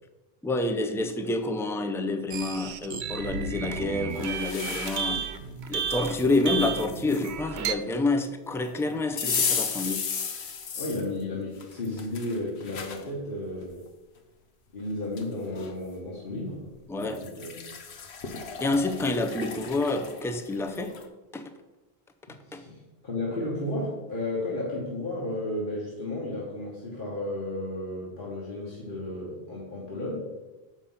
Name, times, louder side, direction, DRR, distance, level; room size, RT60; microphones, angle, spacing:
voice 1, 0.4-5.2 5.7-10.0 16.9-17.2 18.6-20.9 21.3-21.4 22.5-22.6, left 2 dB, 5° left, 7 dB, 0.3 m, -28 dB
sound 1, 2.3-7.7, right 7 dB, 90° right, 0.9 m, -33 dB
sound 2, 4.1-5.3 5.8-7.3 9.2-11.1 11.6-13.0 13.6-13.7 14.8-14.9 15.2-15.7 17.0-21.1, left 6 dB, 80° left, 1.1 m, -34 dB
voice 2, 10.8-13.8 14.7-16.7 17.0-17.7 22.5-22.8 23.0-30.2, left 1 dB, 55° left, -6 dB, 1.7 m, -33 dB
7.0 x 5.4 x 5.5 m, 1.2 s
omnidirectional pair, 1.1 m